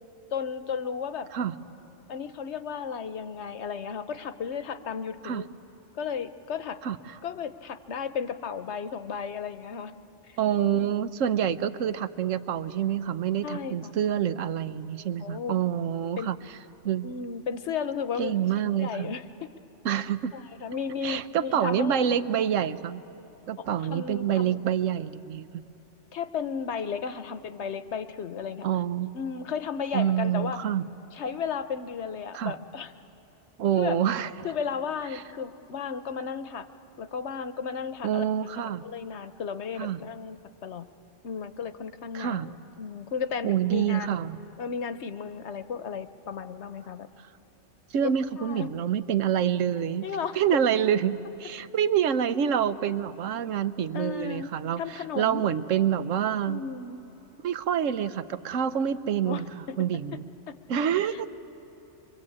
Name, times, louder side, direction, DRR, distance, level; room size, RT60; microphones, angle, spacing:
voice 1, 0.3-1.3 2.1-5.5 5.9-6.8 7.2-9.9 10.3-10.4 10.7-10.9 13.4-13.9 15.2-15.6 16.2-16.3 17.0-19.2 20.3-22.2 23.8-24.6 26.1-28.7 29.1-30.6 31.1-32.9 33.8-34.0 34.4-36.7 37.0-38.2 38.6-40.4 40.6-40.9 41.2-44.2 44.6-47.1 48.0-48.1 48.4-48.7 50.0-50.6 53.9-54.5 54.8-55.4 56.5-57.0 59.2-59.4 61.0-61.3, left 6 dB, 65° left, 11 dB, 1.1 m, -34 dB
voice 2, 6.8-7.2 10.4-16.4 16.8-17.1 18.2-19.1 19.8-20.3 21.0-23.0 23.5-25.6 28.6-29.1 29.9-30.9 32.3-32.5 33.6-34.3 35.1-35.2 38.0-38.8 39.8-40.0 42.1-42.5 43.4-44.4 47.9-50.1 50.4-56.6 57.4-60.2 60.7-61.3, right 9 dB, 85° right, 12 dB, 1.1 m, -27 dB
24.5 x 23.5 x 8.6 m, 3.0 s
omnidirectional pair, 1.3 m